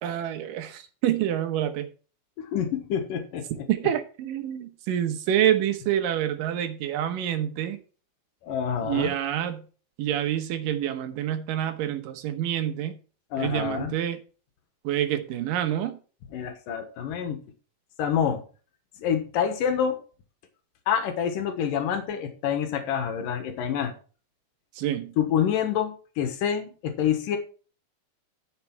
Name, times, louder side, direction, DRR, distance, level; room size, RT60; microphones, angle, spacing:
voice 1, 0.0-1.9 3.7-7.8 8.8-9.6 10.0-13.0 13.4-14.2 14.8-16.0 24.8-25.1, right 11 dB, 80° right, 2.8 m, -27 dB
voice 2, 2.4-3.7 8.4-9.1 13.3-13.9 16.3-17.4 18.0-18.4 19.0-20.0 20.9-23.9 25.2-27.4, left 8 dB, 80° left, 2.9 m, -27 dB
10.5 x 6.7 x 4.6 m
omnidirectional pair, 3.9 m